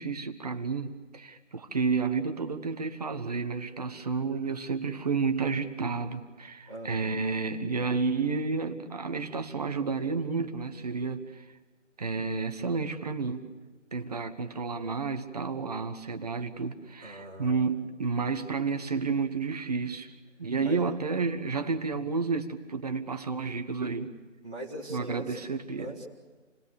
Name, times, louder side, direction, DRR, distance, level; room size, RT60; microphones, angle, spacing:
voice 1, 0.0-11.5 12.0-13.5 13.9-20.1 20.4-24.1 24.9-25.9, right 4 dB, 30° right, 7 dB, 1.3 m, -31 dB
voice 2, 6.7-7.0 17.0-17.7 20.6-20.9 24.4-25.3 25.8-26.1, right 1 dB, 5° right, -11 dB, 0.8 m, -40 dB
29.0 x 19.5 x 6.9 m, 1.3 s
figure-of-eight pair, 160°, 38 cm